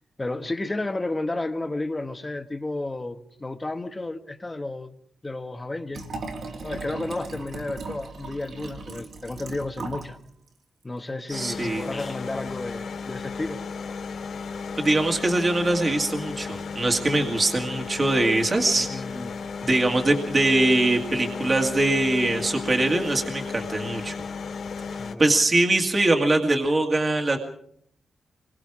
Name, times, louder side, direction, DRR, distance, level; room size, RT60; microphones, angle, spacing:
voice 1, 0.2-4.9 5.2-6.1 6.6-10.2 10.8-13.6 18.7-19.3 25.0-25.4, left 2 dB, 15° left, 1.4 m, -32 dB
Liquid, 5.9-10.1 10.5-10.6, right 3 dB, 55° right, 3.2 m, -37 dB
sound 1, 11.3-25.1, left 5 dB, 60° left, 3.3 m, -34 dB
voice 2, 11.3-11.9 14.8-18.9 19.6-24.2 25.2-27.4, right 2 dB, 25° right, 2.1 m, -22 dB
27.0 x 22.5 x 4.9 m
wide cardioid pair, 165°, 0 cm